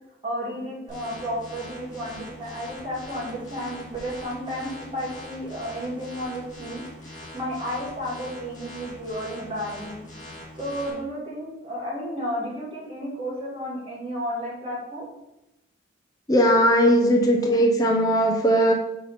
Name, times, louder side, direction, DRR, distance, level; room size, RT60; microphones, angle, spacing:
voice 1, 0.2-10.0 10.6-15.1, equal, 30° right, -6 dB, 2.5 m, -32 dB
sound 1, 0.9-10.9, left 1 dB, 40° left, 2.2 m, -42 dB
voice 2, 16.3-18.7, equal, 20° left, 0 dB, 0.7 m, -19 dB
4.8 x 4.2 x 5.7 m, 0.91 s
head